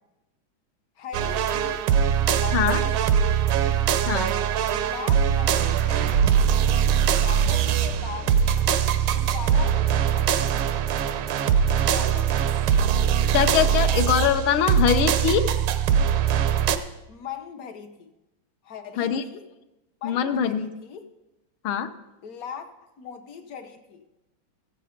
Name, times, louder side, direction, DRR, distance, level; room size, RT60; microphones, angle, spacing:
voice 1, 1.0-1.9 2.3-3.4 4.7-6.4 7.1-8.7 9.1-10.4 11.9-12.5 17.1-18.1 18.6-19.5 20.0-21.1 22.2-24.0, left 7 dB, 60° left, 7 dB, 1.0 m, -39 dB
sound 1, 1.1-16.8, right 8 dB, 85° right, 1.5 m, -22 dB
voice 2, 13.3-15.4 19.0-19.2 20.0-20.7 21.6-21.9, left 9 dB, 85° left, 8 dB, 1.6 m, -22 dB
14.5 x 7.8 x 5.0 m, 1.0 s
omnidirectional pair, 2.2 m